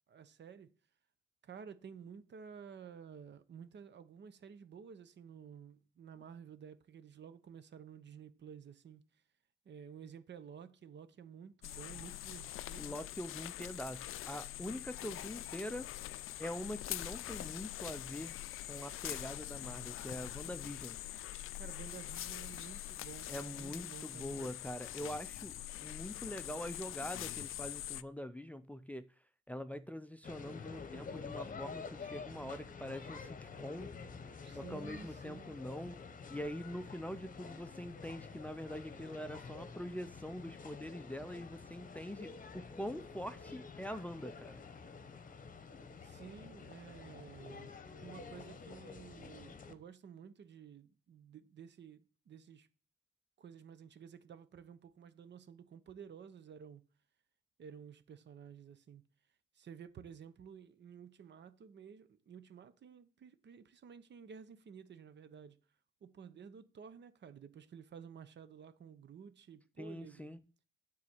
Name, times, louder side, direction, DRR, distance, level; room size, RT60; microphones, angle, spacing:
voice 1, 0.1-0.7 1.4-9.0 9.6-12.9 21.6-24.5 34.4-35.6 46.0-47.7 48.0-52.7 53.4-56.8 57.6-59.0 59.5-65.6 66.0-70.4, right 7 dB, 55° right, 0.8 m, -53 dB
sound 1, 11.6-28.0, left 14 dB, 80° left, 0.4 m, -44 dB
voice 2, 12.8-15.9 16.4-18.3 18.7-21.0 23.3-29.1 29.5-33.9 34.5-36.0 36.3-44.6 69.8-70.4, equal, 5° left, 0.4 m, -44 dB
sound 2, 30.2-49.7, left 5 dB, 40° left, 0.9 m, -49 dB
9.4 x 4.0 x 7.1 m
cardioid pair, 120°, 21 cm